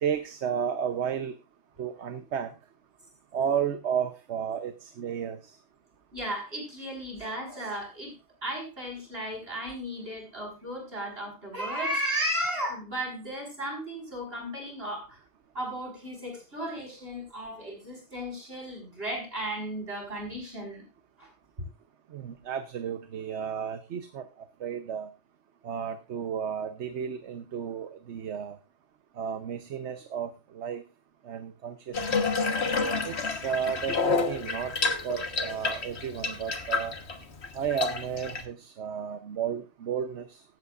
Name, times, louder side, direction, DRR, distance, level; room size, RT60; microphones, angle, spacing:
voice 1, 0.0-1.4 1.8-2.5 3.3-5.6 22.1-25.1 25.6-28.6 29.1-30.8 31.2-32.3 33.0-34.8 35.0-37.0 37.5-40.4, right 8 dB, 70° right, 9 dB, 1.1 m, -33 dB
voice 2, 6.1-8.1 8.4-15.2 15.5-20.8 21.2-21.3, equal, 50° right, 1 dB, 5.7 m, -35 dB
Water tap faucet / Bathtub (filling or washing), 31.9-38.4, left 4 dB, 60° left, 1.6 m, -29 dB
16.0 x 12.0 x 2.5 m, 0.27 s
omnidirectional pair, 1.3 m